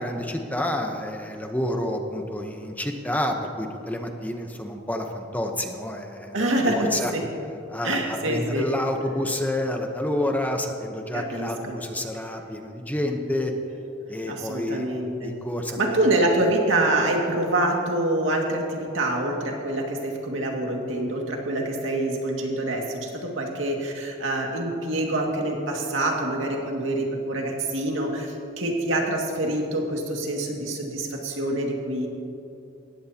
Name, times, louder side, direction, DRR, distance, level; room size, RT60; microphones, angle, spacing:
voice 1, 0.0-7.1 7.7-13.5 14.1-14.9 15.2-16.2, left 1 dB, 10° left, 3 dB, 0.9 m, -29 dB
voice 2, 6.3-7.3 7.8-8.7 11.1-11.8 14.3-15.3 15.8-32.1, right 1 dB, 90° right, 0 dB, 2.1 m, -26 dB
18.5 x 15.0 x 2.9 m, 2.7 s
head